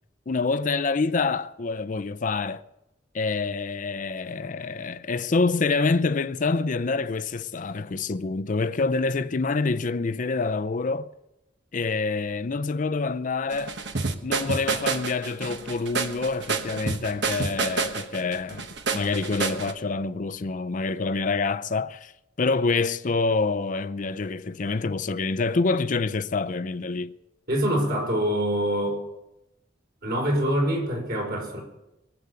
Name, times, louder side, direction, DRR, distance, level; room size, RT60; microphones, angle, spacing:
voice 1, 0.3-2.6 3.1-11.1 11.7-13.8 14.2-22.1 22.4-27.1, left 3 dB, 45° left, 0.5 m, -26 dB
sound 1, 13.5-19.7, right 4 dB, 75° right, 1.1 m, -29 dB
voice 2, 27.5-29.1 30.0-31.6, equal, 60° right, 5.3 m, -25 dB
21.0 x 8.0 x 6.9 m
head